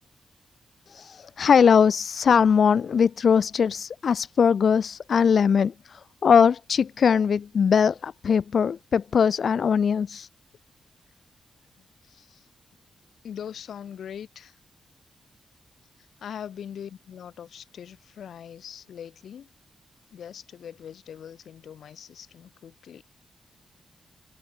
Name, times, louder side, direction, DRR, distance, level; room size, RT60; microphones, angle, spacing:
voice 1, 0.9-10.3, left 6 dB, 55° left, 0.4 m, -21 dB
voice 2, 11.7-12.5 13.2-14.6 16.0-19.5 20.1-23.0, left 8 dB, 80° left, 6.3 m, -41 dB
wide cardioid pair, 140°, 0 cm